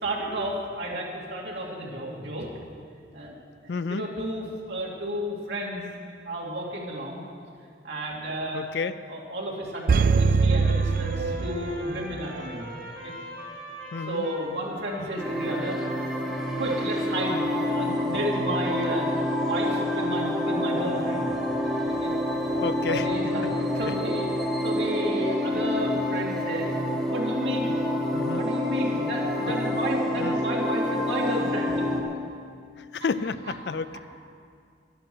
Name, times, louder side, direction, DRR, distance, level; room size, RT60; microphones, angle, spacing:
voice 1, 0.0-2.5 3.1-3.3 3.6-5.9 6.2-7.3 7.8-8.6 9.1-12.7 13.0-13.1 14.1-15.8 16.2-16.3 16.6-21.3 21.8-22.1 22.9-24.3 24.6-26.7 27.1-27.7 28.3-31.8 33.4-33.5 33.9-34.0, right 1 dB, 70° right, -3 dB, 2.5 m, -32 dB
voice 2, 3.7-4.0 8.5-9.0 13.9-14.3 22.6-23.1 23.4-23.5 23.8-23.9 28.1-28.5 29.5-29.6 30.2-30.4 32.8-34.0, left 5 dB, 65° left, 13 dB, 0.4 m, -31 dB
sound 1, 9.9-12.1 12.4-12.5, right 4 dB, 50° right, 0.4 m, -22 dB
Trumpet, 10.5-17.7, equal, 20° left, 3.7 m, -44 dB
sound 2, 15.2-32.0, left 1 dB, ahead, 1.4 m, -28 dB
12.5 x 11.0 x 6.2 m, 2.3 s
head